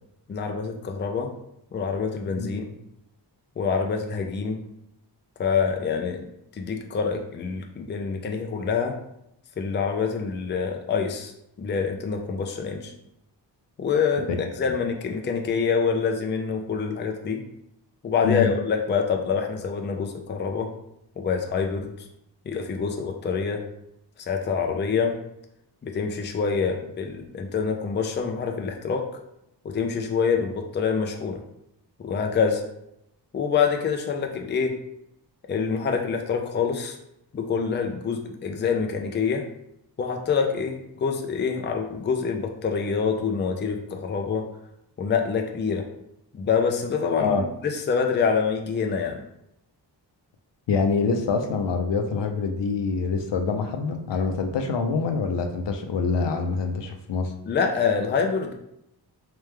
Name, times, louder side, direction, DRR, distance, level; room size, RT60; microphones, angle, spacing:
voice 1, 0.3-1.3 1.7-2.8 3.6-4.6 5.4-6.2 6.5-8.9 9.6-11.3 11.6-12.9 13.8-14.3 14.6-17.4 18.0-20.7 21.2-22.1 22.5-23.6 24.2-25.2 25.8-29.0 29.6-31.4 32.0-32.6 33.3-34.7 35.5-37.0 37.3-39.4 40.0-44.4 45.0-45.8 46.3-49.2 57.4-58.5, left 5 dB, 25° left, 3 dB, 0.4 m, -26 dB
voice 2, 50.7-57.3, left 4 dB, 80° left, 5 dB, 0.7 m, -25 dB
3.4 x 3.3 x 3.2 m, 0.81 s
wide cardioid pair, 160°, 42 cm